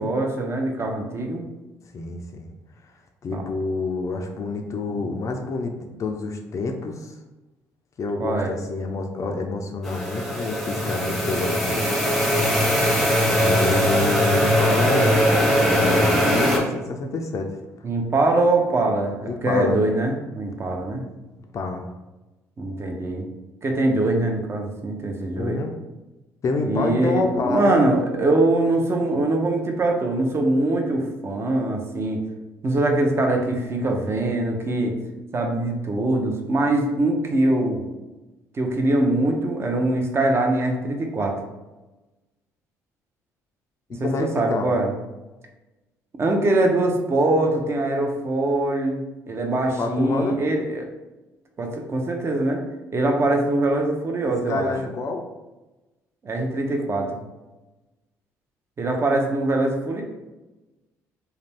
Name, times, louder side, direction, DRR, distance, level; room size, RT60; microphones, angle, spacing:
voice 1, 0.0-1.4 3.3-3.4 4.9-5.1 8.2-8.5 17.8-21.0 22.6-23.3 23.6-25.6 26.6-32.2 32.6-35.0 35.3-37.8 38.5-41.4 44.0-44.9 46.2-49.0 49.3-50.8 51.6-52.6 52.9-54.7 56.2-57.2 58.8-60.0, right 2 dB, 35° right, 2 dB, 0.7 m, -23 dB
voice 2, 1.9-2.5 3.2-7.1 8.0-12.0 13.4-15.3 15.6-17.5 19.2-19.8 21.5-21.9 25.4-25.7 26.4-27.8 43.9-44.7 49.8-50.4 54.3-55.3, left 3 dB, 45° left, 3 dB, 0.4 m, -27 dB
sound 1, 9.8-16.6, equal, ahead, 0.8 m, -20 dB
2.5 x 2.2 x 3.3 m, 1.1 s
hypercardioid pair, 60°, 7 cm